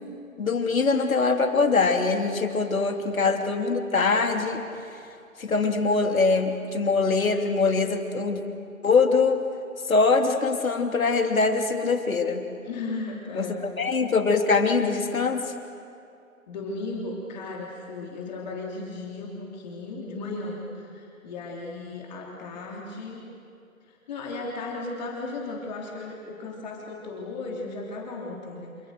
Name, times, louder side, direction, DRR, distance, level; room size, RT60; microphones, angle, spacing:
voice 1, 0.4-4.6 5.4-8.4 8.8-9.4 9.9-12.4 13.3-15.5, left 4 dB, 70° left, 4 dB, 3.0 m, -23 dB
voice 2, 2.9-3.2 12.6-13.6 16.5-23.3 23.9-28.9, left 3 dB, 30° left, -2 dB, 3.4 m, -36 dB
28.5 x 27.5 x 6.6 m, 2.5 s
figure-of-eight pair, 150°, 42 cm